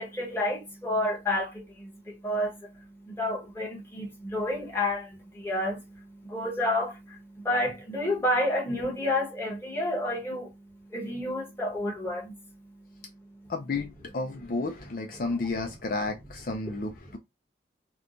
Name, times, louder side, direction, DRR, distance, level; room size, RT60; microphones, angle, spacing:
voice 1, 0.0-13.5, left 1 dB, 15° left, 1.1 m, -31 dB
voice 2, 13.5-17.2, left 3 dB, 50° left, 0.4 m, -32 dB
4.5 x 2.2 x 2.5 m
head